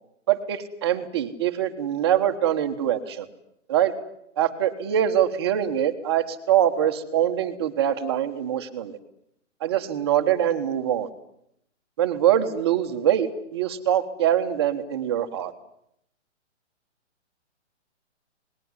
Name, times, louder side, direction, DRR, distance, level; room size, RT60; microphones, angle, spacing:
voice 1, 0.3-3.3 3.7-3.9 4.4-9.0 9.6-11.1 12.0-15.5, right 10 dB, 20° right, 8 dB, 1.3 m, -23 dB
26.5 x 20.0 x 9.9 m, 0.75 s
hypercardioid pair, 175°, 36 cm